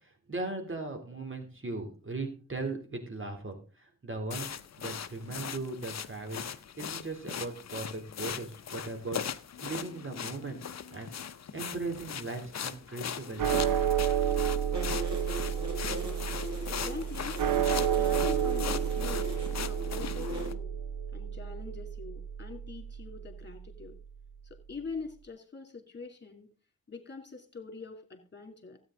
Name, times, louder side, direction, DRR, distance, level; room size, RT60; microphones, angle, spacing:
voice 1, 0.3-6.4 6.8-9.2 9.6-10.6 10.9-11.1 11.5-13.6, right 3 dB, 40° right, 4 dB, 3.1 m, -38 dB
sound 1, 4.3-20.5, left 8 dB, 55° left, 0.7 m, -40 dB
sound 2, 13.4-23.8, right 9 dB, 80° right, 1.0 m, -31 dB
sound 3, 14.7-20.5, equal, 55° right, 3.9 m, -40 dB
voice 2, 16.7-17.4 17.7-19.3 19.6-20.7 21.1-24.0 24.4-26.5 26.9-28.8, left 4 dB, 35° left, 5 dB, 2.7 m, -44 dB
13.0 x 8.9 x 3.7 m, 0.36 s
supercardioid pair, 40°, 33 cm